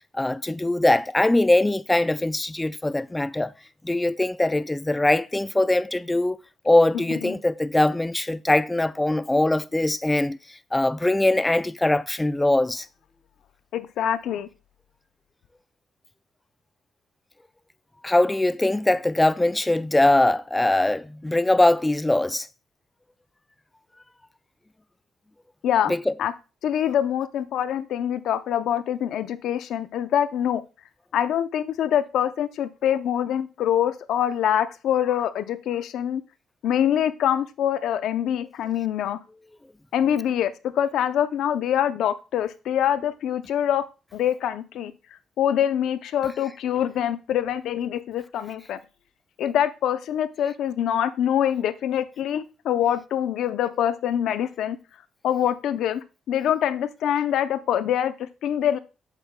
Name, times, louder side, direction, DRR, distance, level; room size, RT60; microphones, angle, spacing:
voice 1, 0.1-3.5 3.8-6.4 6.6-12.9 18.0-22.5 25.9-26.1, left 1 dB, 10° left, 0.4 m, -22 dB
voice 2, 13.7-14.5 25.6-25.9 26.2-26.3 26.6-30.6 31.1-36.2 36.6-39.2 39.9-43.8 44.1-44.9 45.4-48.8 49.4-54.8 55.2-58.8, left 10 dB, 75° left, 0.5 m, -24 dB
8.2 x 6.8 x 2.2 m
cardioid pair, 90°, 0 cm